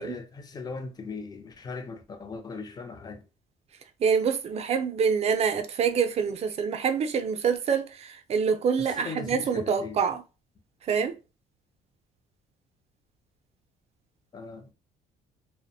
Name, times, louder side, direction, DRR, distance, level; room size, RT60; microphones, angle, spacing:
voice 1, 0.0-3.3 8.8-10.0 14.3-14.7, left 4 dB, 25° left, 0.5 m, -39 dB
voice 2, 4.0-10.2 10.9-11.2, right 6 dB, 40° right, 0.4 m, -26 dB
2.5 x 2.1 x 2.6 m
cardioid pair, 110°, 17 cm